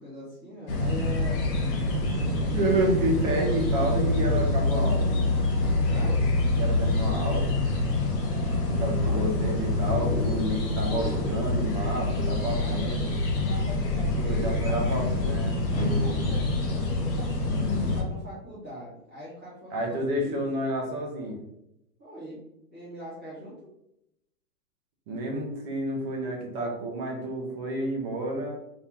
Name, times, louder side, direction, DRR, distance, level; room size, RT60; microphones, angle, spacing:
voice 1, 0.0-1.4 2.0-2.3 5.9-6.2 9.0-9.7 12.2-15.3 16.0-20.6 22.0-22.4 22.7-23.7, equal, 10° right, -15 dB, 0.4 m, -42 dB
sound 1, 0.7-18.0, left 2 dB, 35° left, 0.9 m, -26 dB
voice 2, 2.5-5.1 6.5-7.5 8.7-13.2 14.1-16.1 19.7-21.4 25.1-28.5, right 1 dB, 25° right, 0 dB, 0.9 m, -30 dB
3.4 x 3.0 x 3.5 m, 0.82 s
hypercardioid pair, 145°, 49 cm